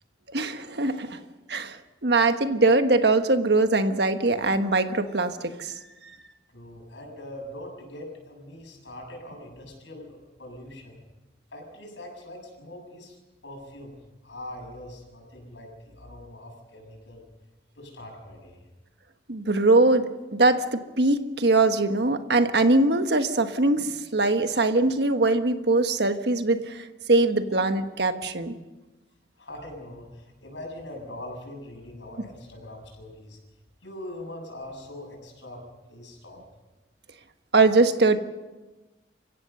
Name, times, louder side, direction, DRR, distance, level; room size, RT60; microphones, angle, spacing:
voice 1, 0.3-1.2 1.5-5.7 19.3-28.5 37.5-38.2, right 2 dB, 65° right, 8 dB, 1.4 m, -22 dB
voice 2, 6.5-11.0 11.5-13.9 14.2-17.3 17.8-18.7 29.4-33.4 33.8-36.4, left 1 dB, 90° left, 1 dB, 7.2 m, -42 dB
28.0 x 16.0 x 6.8 m, 1.2 s
head